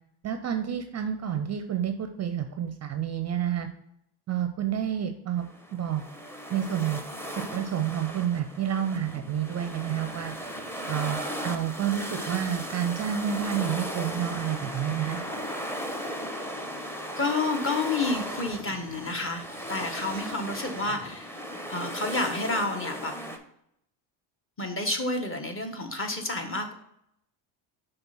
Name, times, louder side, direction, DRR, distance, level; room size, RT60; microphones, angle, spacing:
voice 1, 0.2-3.7 4.3-6.0 6.5-7.0 7.5-10.3 10.9-15.2, right 9 dB, 35° right, 8 dB, 0.5 m, -29 dB
sound 1, 5.4-23.4, equal, 5° left, 0.7 m, -37 dB
voice 2, 17.2-21.4 21.7-23.1 24.6-26.7, left 2 dB, 25° left, 4 dB, 1.1 m, -30 dB
6.0 x 3.3 x 5.5 m, 0.75 s
supercardioid pair, 85°, 50 cm